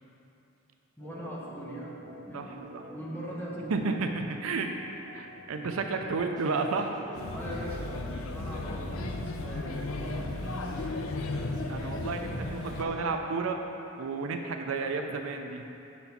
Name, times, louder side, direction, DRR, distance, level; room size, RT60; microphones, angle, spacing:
voice 1, 1.0-1.9 2.3-2.5 2.9-3.9 7.3-10.3, equal, 10° left, -5 dB, 0.9 m, -41 dB
Organ, 1.0-13.1, right 2 dB, 55° right, 0.8 m, -46 dB
voice 2, 2.3-2.8 3.7-4.7 5.1-7.0 11.7-13.6 14.0-15.6, right 4 dB, 75° right, 4 dB, 0.5 m, -32 dB
sound 1, 6.3-13.2, right 1 dB, 20° right, 0.6 m, -51 dB
Male speech man speaking / Child speech kid speaking / Chatter, 7.1-12.8, left 2 dB, 75° left, 0.4 m, -35 dB
5.2 x 4.3 x 5.7 m, 2.9 s
head